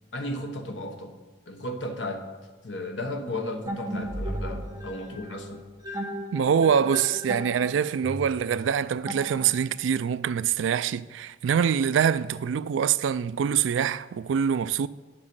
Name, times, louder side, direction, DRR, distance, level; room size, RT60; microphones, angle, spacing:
voice 1, 0.1-1.2 1.5-2.3 2.6-5.6, left 1 dB, 75° left, 1.1 m, -34 dB
sound 1, 3.7-9.8, right 1 dB, 20° right, 1.1 m, -35 dB
voice 2, 6.3-14.9, right 7 dB, 90° right, 0.3 m, -24 dB
9.6 x 7.3 x 5.4 m
head